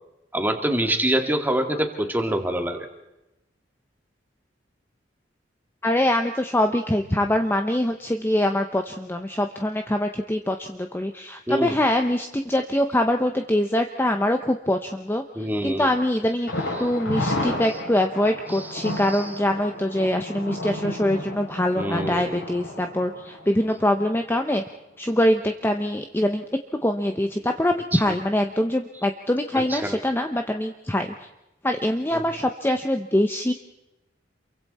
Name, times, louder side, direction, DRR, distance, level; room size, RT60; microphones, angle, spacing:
voice 1, 0.3-2.9 11.5-11.8 15.4-15.9 18.5-19.2 21.8-22.4 27.9-28.0 29.7-30.0 32.1-32.2, right 1 dB, 10° right, 4 dB, 2.2 m, -26 dB
voice 2, 5.8-15.2 15.6-16.5 16.8-24.6 25.0-26.4 26.8-31.1 31.6-33.5, left 1 dB, 10° left, 5 dB, 0.8 m, -23 dB
Thunder, 16.5-24.2 24.5-24.6 25.0-25.1, left 1 dB, 80° left, 7.0 m, -32 dB
28.0 x 23.5 x 4.3 m, 0.94 s
head